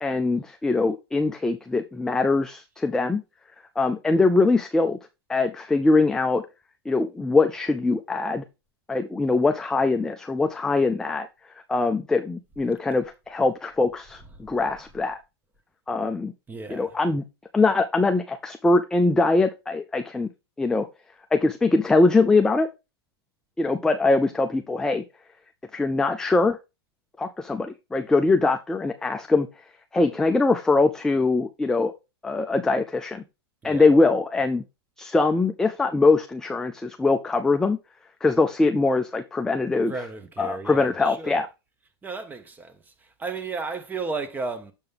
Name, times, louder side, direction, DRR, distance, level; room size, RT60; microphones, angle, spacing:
voice 1, 0.0-3.2 3.8-5.0 5.3-6.4 6.9-8.4 8.9-11.3 11.7-15.2 15.9-16.3 16.7-17.2 17.5-20.3 20.6-20.9 21.3-22.7 23.6-25.0 25.7-26.6 27.2-29.5 29.9-31.9 32.2-33.2 33.6-34.6 35.0-37.8 38.2-39.9 40.4-41.5, left 3 dB, 5° left, 0.3 m, -22 dB
voice 2, 14.2-14.5 14.8-14.9 16.5-17.0 33.6-34.0 39.9-41.5 42.0-44.7, right 4 dB, 15° right, 0.9 m, -34 dB
6.8 x 5.3 x 3.4 m
hypercardioid pair, 130°, 13 cm